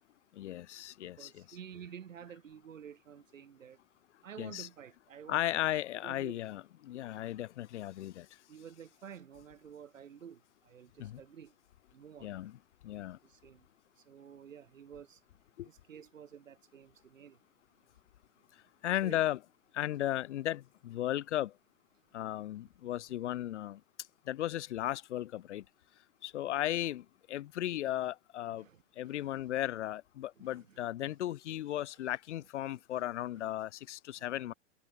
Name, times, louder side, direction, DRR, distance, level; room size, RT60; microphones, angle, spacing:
voice 1, 0.3-1.6 4.4-4.7 5.3-8.3 11.0-11.2 12.2-12.6 12.8-13.2 15.6-15.7 18.8-19.4 19.7-21.5 22.1-23.8 24.3-25.6 26.2-28.7 29.0-34.5, left 13 dB, 60° left, 2.5 m, -36 dB
voice 2, 1.0-3.8 4.2-5.4 6.0-6.4 8.5-11.5 11.9-12.3 13.2-13.7 14.0-15.2 15.6-17.4 19.0-19.2 28.5-29.4 30.4-31.1 34.2-34.6, right 8 dB, 75° right, 6.5 m, -51 dB
hypercardioid pair, 110°, 39 cm